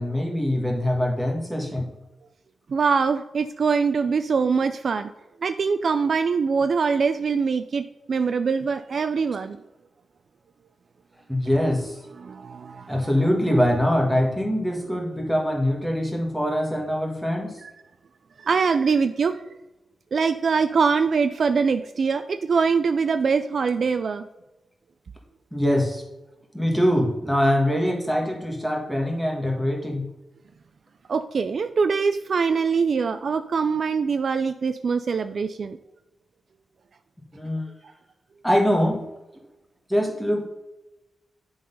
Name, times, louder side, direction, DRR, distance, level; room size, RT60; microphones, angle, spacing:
voice 1, 0.0-1.8 11.3-12.0 12.9-17.6 25.5-26.0 26.5-30.1 37.3-37.6 38.4-39.0 39.9-40.5, equal, ahead, 0 dB, 1.4 m, -23 dB
voice 2, 2.7-5.1 5.4-9.6 12.1-13.3 17.6-17.7 18.4-19.4 20.1-24.3 31.1-35.8, right 5 dB, 45° right, 9 dB, 0.3 m, -23 dB
10.0 x 3.9 x 5.3 m, 0.99 s
wide cardioid pair, 175°, 0 cm